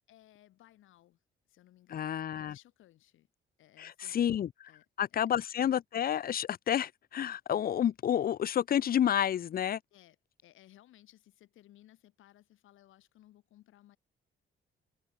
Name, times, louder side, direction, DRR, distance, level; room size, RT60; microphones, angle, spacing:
voice 1, 0.1-1.2 1.5-2.2 2.5-3.3 3.6-4.3 4.6-4.8 5.1-5.3 9.9-10.2 10.4-14.0, left 14 dB, 85° left, 6.3 m, -60 dB
voice 2, 1.9-2.6 3.8-4.7 5.0-9.8, left 10 dB, 50° left, 0.6 m, -30 dB
cardioid pair, 90°, 20 cm